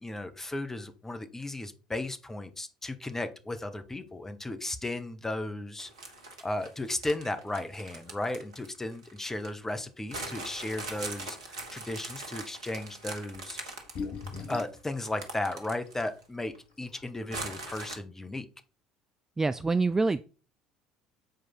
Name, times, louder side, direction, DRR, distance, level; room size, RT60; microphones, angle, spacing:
voice 1, 0.0-5.9 6.4-13.6 14.5-18.4, left 2 dB, 15° left, 9 dB, 1.2 m, -35 dB
sound 1, 5.8-9.5 10.1-16.2 16.5-16.6 17.3-18.0, right 3 dB, 70° right, 1.4 m, -41 dB
sound 2, 13.8-14.8 15.9-16.0 16.5-16.6 16.8-17.3, left 5 dB, 50° left, 1.2 m, -38 dB
voice 2, 19.4-20.2, right 3 dB, 15° right, 13 dB, 0.4 m, -26 dB
7.8 x 4.7 x 4.5 m, 0.34 s
figure-of-eight pair, 60°, 3 cm